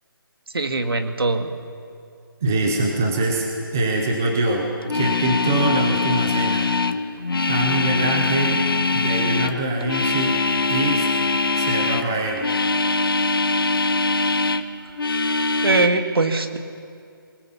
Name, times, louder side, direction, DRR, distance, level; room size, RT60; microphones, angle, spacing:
voice 1, 0.5-1.5 15.6-16.6, right 3 dB, 80° right, 6 dB, 2.2 m, -21 dB
voice 2, 2.4-3.5 3.7-6.7 7.5-8.7 8.9-10.4 10.7-11.1 11.5-12.5, right 2 dB, 5° right, 1 dB, 0.5 m, -23 dB
sound 1, 4.8-12.1 12.4-14.7 15.0-15.9, left 3 dB, 70° left, 1.3 m, -22 dB
24.5 x 20.0 x 7.1 m, 2.4 s
hypercardioid pair, 180°, 12 cm